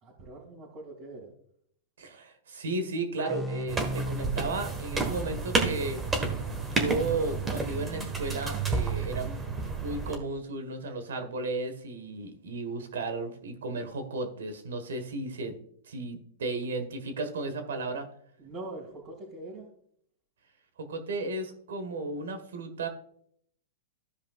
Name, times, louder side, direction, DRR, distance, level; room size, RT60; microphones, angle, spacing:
voice 1, 0.0-1.3 18.4-19.7, right 2 dB, 35° right, -4 dB, 2.3 m, -43 dB
voice 2, 2.0-6.2 6.7-9.4 9.8-15.6 15.8-18.1 20.8-22.9, right 2 dB, 85° right, 8 dB, 1.5 m, -34 dB
sound 1, 3.2-6.6, right 1 dB, ahead, 0.7 m, -38 dB
sound 2, 3.7-10.2, right 3 dB, 15° right, 1.3 m, -31 dB
14.5 x 5.2 x 2.4 m, 0.67 s
hypercardioid pair, 140°, 0 cm